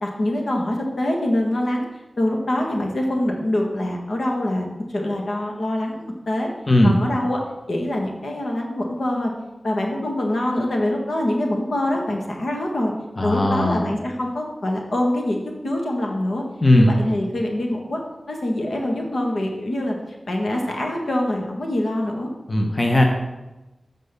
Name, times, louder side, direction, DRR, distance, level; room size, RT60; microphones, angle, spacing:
voice 1, 0.0-1.9 2.2-6.5 6.8-7.4 7.7-9.3 9.6-12.9 13.2-16.4 16.7-18.0 18.3-20.0 20.3-22.3, left 1 dB, 75° left, 0 dB, 1.6 m, -24 dB
voice 2, 6.7-7.0 13.2-13.8 16.6-16.9 22.5-23.0, left 1 dB, 35° left, 2 dB, 1.1 m, -17 dB
7.8 x 5.4 x 6.7 m, 1.0 s
wide cardioid pair, 85°, 0 cm